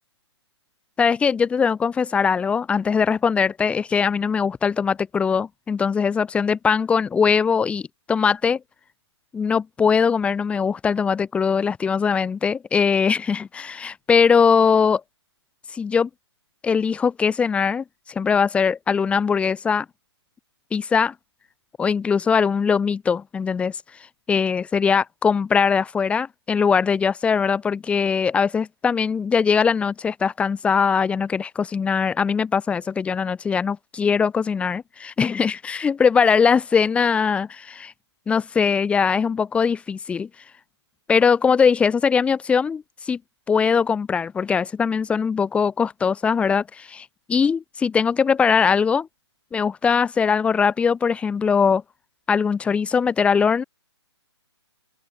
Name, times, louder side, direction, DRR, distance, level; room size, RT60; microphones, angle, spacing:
voice 1, 1.0-8.6 9.3-15.0 15.7-16.1 16.6-19.9 20.7-21.1 21.8-23.8 24.3-37.9 38.3-40.3 41.1-43.2 43.5-49.1 49.5-51.8 52.3-53.6, left 6 dB, 10° left, 4.3 m, -21 dB
open air
hypercardioid pair, 155°, 15 cm